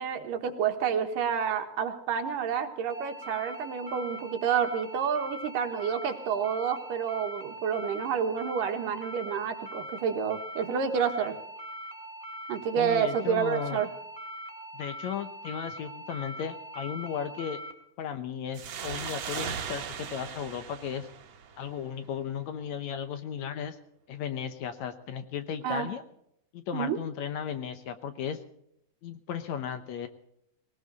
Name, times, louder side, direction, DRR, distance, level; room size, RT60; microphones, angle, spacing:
voice 1, 0.0-11.4 12.5-13.9 25.6-25.9 26.7-27.0, right 7 dB, 85° right, 6 dB, 3.0 m, -29 dB
sound 1, 2.9-17.7, equal, 20° right, 2.4 m, -42 dB
voice 2, 12.8-13.8 14.7-17.6 18.0-21.1 21.6-23.8 24.1-26.0 26.5-28.4 29.0-30.1, left 8 dB, 70° left, 9 dB, 2.0 m, -35 dB
sound 2, 18.5-21.9, right 7 dB, 60° right, 2.3 m, -38 dB
19.5 x 18.5 x 4.0 m, 0.75 s
omnidirectional pair, 3.8 m